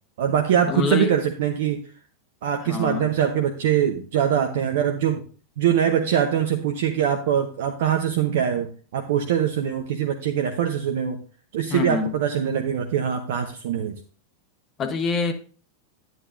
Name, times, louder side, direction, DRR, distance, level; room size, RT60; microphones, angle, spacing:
voice 1, 0.2-1.8 2.4-5.2 5.6-11.2 11.5-14.0, right 9 dB, 55° right, 4 dB, 0.8 m, -23 dB
voice 2, 0.7-1.1 2.6-3.0 11.7-12.1 14.8-15.3, left 5 dB, 30° left, 6 dB, 1.3 m, -25 dB
9.9 x 9.2 x 2.6 m, 0.40 s
figure-of-eight pair, 90°, 0 cm